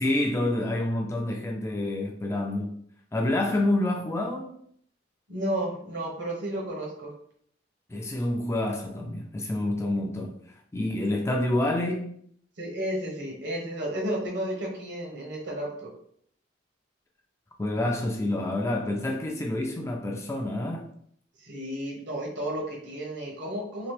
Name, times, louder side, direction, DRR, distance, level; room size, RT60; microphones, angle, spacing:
voice 1, 0.0-2.8 3.1-4.5 7.9-10.4 10.7-12.2 17.6-20.9, left 1 dB, 15° left, 0.3 m, -28 dB
voice 2, 5.3-7.1 12.6-15.9 21.4-23.9, right 1 dB, 70° right, 1.1 m, -32 dB
3.0 x 2.8 x 3.2 m
head